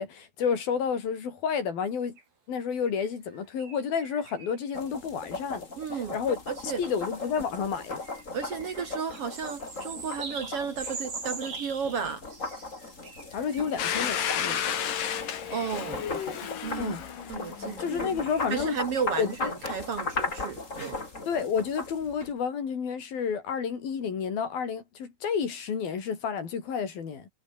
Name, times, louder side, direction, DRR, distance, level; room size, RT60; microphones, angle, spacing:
voice 1, 0.0-2.2 2.5-5.7 5.9-6.4 6.8-8.0 13.3-14.7 16.8-17.0 17.8-18.8 19.2-19.5 21.3-27.3, left 6 dB, 85° left, 5.8 m, -30 dB
sound 1, 2.2-2.3 3.0-4.8 5.3-5.4 7.8-14.2 15.1-15.3 15.8-15.9 17.7-21.2, right 5 dB, 80° right, 8.0 m, -44 dB
sound 2, 4.7-22.3, left 3 dB, 20° left, 3.9 m, -38 dB
voice 2, 5.8-6.2 6.5-6.8 8.3-12.2 13.6-13.7 15.5-17.0 17.3-18.2 18.5-21.0, right 6 dB, 50° right, 2.0 m, -34 dB
Domestic sounds home sounds, 13.8-18.4, left 9 dB, 70° left, 3.8 m, -32 dB
omnidirectional pair, 4.1 m